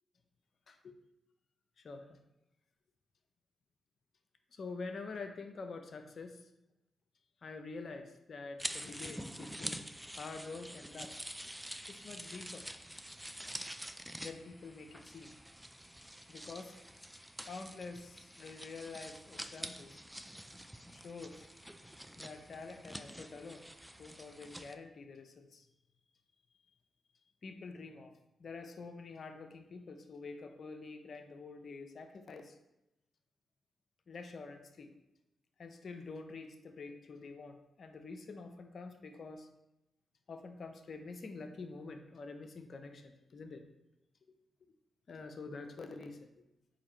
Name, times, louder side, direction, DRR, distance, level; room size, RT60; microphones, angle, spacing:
voice 1, 1.8-2.2 4.5-6.4 7.4-9.9 10.1-11.1 11.9-12.7 14.2-15.3 16.3-16.9 17.5-20.0 20.9-21.5 22.2-23.7 24.0-25.7 27.4-28.1 28.4-32.6 34.1-34.9 35.6-39.5 40.3-43.6 45.1-46.3, left 4 dB, 60° left, 6 dB, 0.4 m, -47 dB
sound 1, 8.6-24.7, equal, 5° right, 0.3 m, -47 dB
4.0 x 2.7 x 4.2 m, 0.91 s
hypercardioid pair, 40°, 0 cm